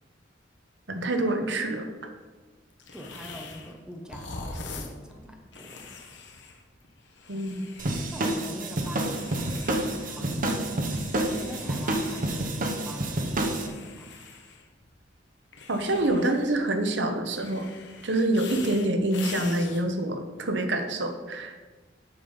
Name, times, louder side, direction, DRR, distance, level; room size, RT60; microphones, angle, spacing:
voice 1, 0.9-1.9 7.3-7.7 15.7-17.7 18.0-21.6, right 1 dB, 70° right, 6 dB, 0.9 m, -26 dB
sound 1, 2.8-3.8 4.1-8.4 9.0-10.1 10.5-12.4 13.2-14.9 15.5-16.8 17.3-19.8, left 4 dB, 70° left, 1.1 m, -43 dB
voice 2, 2.9-5.9 8.1-11.0 11.3-14.1, equal, 5° right, 2 dB, 1.0 m, -43 dB
sound 2, 7.8-13.7, right 1 dB, 50° right, 1.1 m, -29 dB
6.9 x 5.6 x 7.1 m, 1.3 s
head